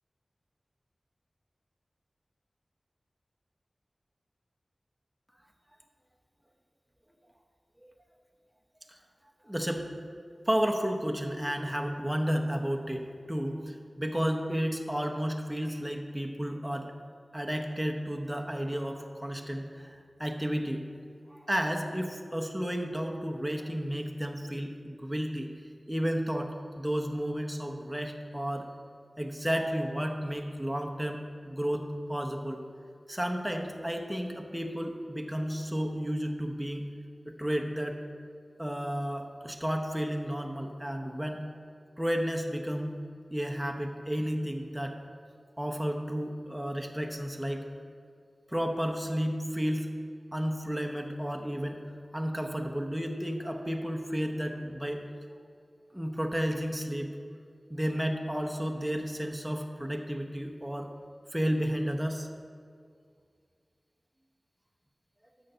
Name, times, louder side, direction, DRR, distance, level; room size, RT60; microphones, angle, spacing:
voice 1, 9.4-9.9 10.5-16.9 17.3-20.8 21.3-25.5 25.9-26.5 26.8-28.7 29.2-32.6 33.1-36.9 37.3-38.0 38.6-41.5 42.0-43.0 43.3-44.9 45.6-47.7 48.5-49.9 50.3-51.8 52.1-55.0 55.9-57.1 57.7-60.9 61.3-62.3, equal, 5° right, 3 dB, 0.8 m, -32 dB
6.7 x 6.5 x 5.5 m, 2.2 s
wide cardioid pair, 60°, 0 cm